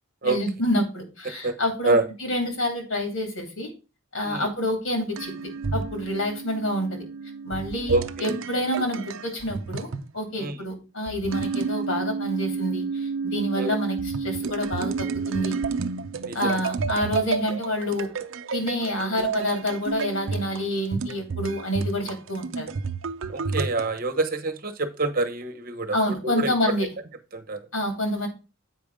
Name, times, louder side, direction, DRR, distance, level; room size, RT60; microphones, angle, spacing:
voice 1, 0.2-3.7 4.1-5.3 5.7-7.0 7.4-15.6 16.3-18.1 18.5-22.7 25.9-26.9 27.7-28.3, left 1 dB, 70° left, 4 dB, 2.7 m, -28 dB
sound 1, 5.2-10.1 11.1-24.0, right 5 dB, 60° right, 0.5 m, -31 dB
voice 2, 7.9-8.4 10.4-10.6 13.6-13.8 16.2-16.6 23.3-26.0 26.2-26.5 27.3-27.6, right 2 dB, 40° right, 7 dB, 1.0 m, -26 dB
8.0 x 5.1 x 4.8 m, 0.31 s
head